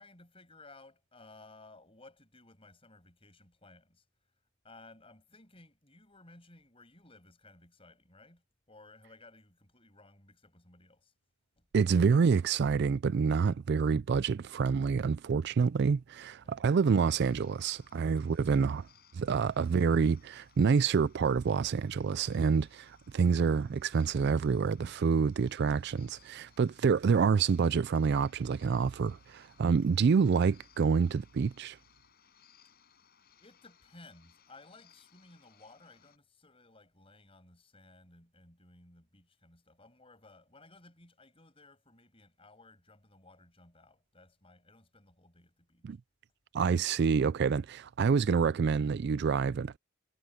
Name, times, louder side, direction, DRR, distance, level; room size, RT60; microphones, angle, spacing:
voice 1, 0.0-4.1 4.6-11.1 11.6-11.7 16.4-16.8 18.2-18.4 33.4-46.0, left 2 dB, 25° left, 7.3 m, -58 dB
voice 2, 11.7-18.9 19.1-31.8 45.8-46.0 46.5-49.8, right 5 dB, 50° right, 0.3 m, -27 dB
sound 1, 16.9-36.2, left 7 dB, 45° left, 7.1 m, -64 dB
head